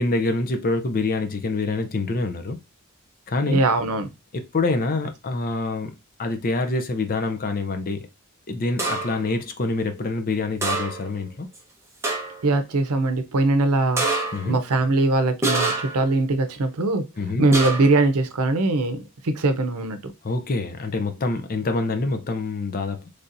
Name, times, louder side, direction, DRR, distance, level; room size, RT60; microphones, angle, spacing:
voice 1, 0.0-2.6 3.3-3.6 4.3-5.9 6.2-8.1 8.5-11.5 14.3-14.6 17.2-17.4 20.2-23.1, left 3 dB, 40° left, 0.6 m, -26 dB
voice 2, 3.5-4.1 12.4-14.0 14.4-17.0 17.4-20.1, right 2 dB, 90° right, 0.7 m, -21 dB
sound 1, 8.8-9.3 10.6-11.2 11.5-11.6 12.0-12.5 14.0-14.5 15.4-16.1 17.5-18.0, right 2 dB, 10° right, 0.8 m, -26 dB
4.1 x 3.4 x 2.6 m
head